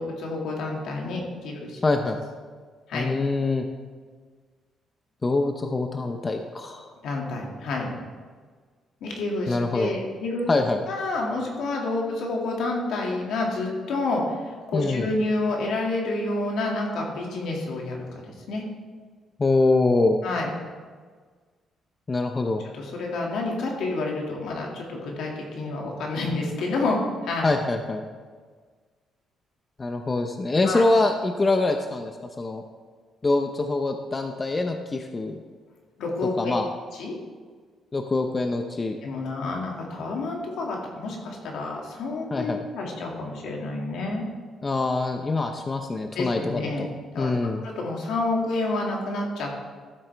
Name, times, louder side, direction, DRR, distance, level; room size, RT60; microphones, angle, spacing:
voice 1, 0.0-1.8 2.9-3.1 7.0-7.9 9.0-10.5 10.9-18.7 20.2-20.5 22.8-27.5 30.6-30.8 36.0-36.5 36.9-37.1 39.0-44.2 46.2-46.9 47.1-47.3 47.6-49.5, left 2 dB, 80° left, -1 dB, 2.2 m, -29 dB
voice 2, 1.8-2.2 2.9-3.6 5.2-6.9 9.5-9.9 10.5-10.8 14.7-15.1 19.4-20.2 22.1-22.6 27.4-28.0 29.8-32.1 32.4-32.6 33.2-35.4 36.4-36.7 37.9-39.0 42.3-42.6 44.6-46.9 47.2-47.6, left 2 dB, 30° left, 5 dB, 0.7 m, -24 dB
13.0 x 7.6 x 3.4 m, 1.5 s
cardioid pair, 90°, 0 cm